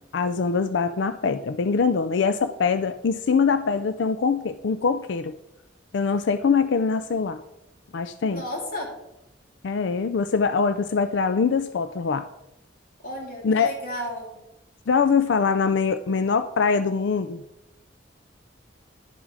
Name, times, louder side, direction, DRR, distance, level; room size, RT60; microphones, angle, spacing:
voice 1, 0.1-5.4 5.9-7.4 7.9-8.4 9.6-12.2 13.4-13.7 14.9-17.4, left 5 dB, 70° left, 11 dB, 0.4 m, -23 dB
voice 2, 8.3-8.9 13.0-14.4, equal, 50° left, -2 dB, 3.4 m, -33 dB
11.0 x 7.3 x 4.8 m, 0.89 s
head